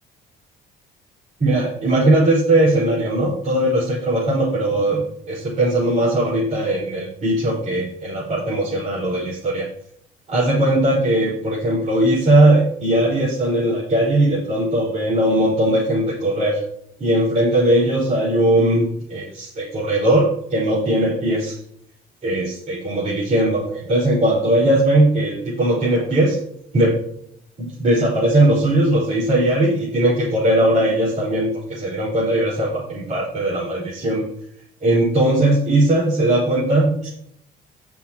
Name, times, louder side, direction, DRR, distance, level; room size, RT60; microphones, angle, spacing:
voice 1, 1.4-9.7 10.3-16.6 17.0-21.6 22.2-26.4 26.7-27.0 27.6-34.2 34.8-37.1, right 1 dB, 45° right, -7 dB, 4.9 m, -19 dB
16.5 x 7.3 x 3.0 m, 0.69 s
cardioid pair, 110°, 17 cm